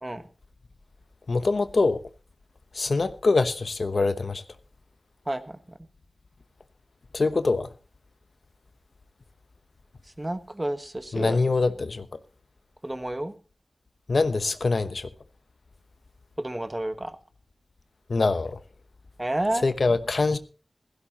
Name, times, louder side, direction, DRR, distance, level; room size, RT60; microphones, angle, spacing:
voice 1, 1.3-2.0 2.7-4.4 7.1-7.7 11.1-12.1 14.1-15.1 18.1-18.6 19.5-20.4, left 3 dB, 80° left, 1.0 m, -24 dB
voice 2, 5.3-5.6 10.2-11.4 12.8-13.3 16.4-17.2 19.2-19.6, right 1 dB, 25° right, 1.4 m, -30 dB
16.0 x 15.5 x 2.9 m
wide cardioid pair, 60°, 0 cm